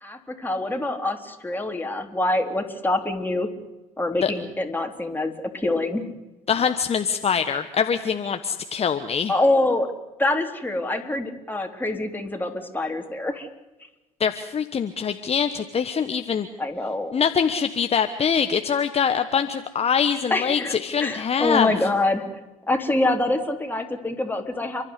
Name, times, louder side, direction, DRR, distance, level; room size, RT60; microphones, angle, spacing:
voice 1, 0.0-3.5 4.0-6.0 9.3-9.9 10.2-13.5 16.6-17.1 20.3-22.3 22.7-24.8, left 2 dB, 10° left, 4 dB, 3.7 m, -25 dB
voice 2, 6.5-9.3 14.2-16.5 17.1-21.7, left 7 dB, 35° left, 9 dB, 1.3 m, -23 dB
30.0 x 12.0 x 9.8 m, 1.1 s
hypercardioid pair, 60°, 18 cm